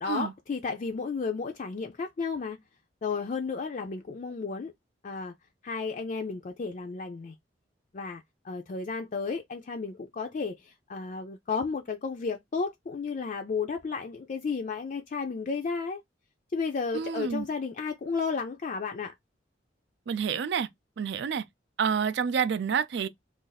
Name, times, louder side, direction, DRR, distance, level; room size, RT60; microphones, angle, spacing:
voice 1, 0.0-2.6 3.0-4.7 5.0-5.3 5.6-7.3 7.9-16.0 16.5-19.1, left 4 dB, 45° left, 0.4 m, -33 dB
voice 2, 16.9-17.5 20.1-20.7 21.0-21.4 21.8-23.1, right 7 dB, 65° right, 0.4 m, -28 dB
2.5 x 2.4 x 3.9 m
head